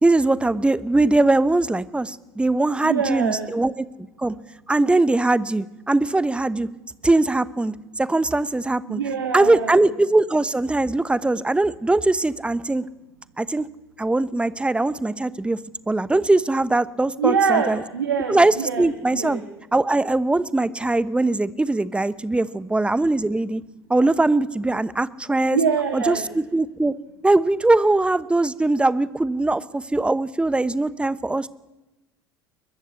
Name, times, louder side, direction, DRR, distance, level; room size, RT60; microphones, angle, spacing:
voice 1, 0.0-3.9 4.2-4.3 4.7-6.7 7.0-9.0 9.3-12.8 13.4-13.7 14.0-15.6 15.9-17.8 18.3-19.4 19.7-23.6 23.9-25.6 25.9-26.9 27.2-31.5, right 2 dB, 10° right, 17 dB, 1.0 m, -21 dB
voice 2, 2.8-3.5 8.9-9.8 17.2-19.4 25.5-26.2, right 6 dB, 80° right, 6 dB, 2.0 m, -24 dB
22.0 x 21.5 x 8.1 m, 0.98 s
figure-of-eight pair, 70°, 12 cm